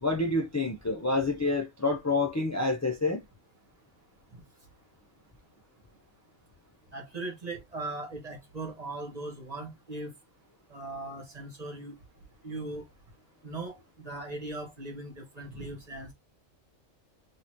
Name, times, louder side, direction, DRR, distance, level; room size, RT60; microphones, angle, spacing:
voice 1, 0.0-3.2, left 3 dB, 25° left, 0.4 m, -28 dB
voice 2, 6.9-10.1 10.7-12.0 12.4-12.9 13.4-16.1, right 2 dB, 30° right, 1.7 m, -39 dB
4.0 x 3.7 x 3.1 m
omnidirectional pair, 1.4 m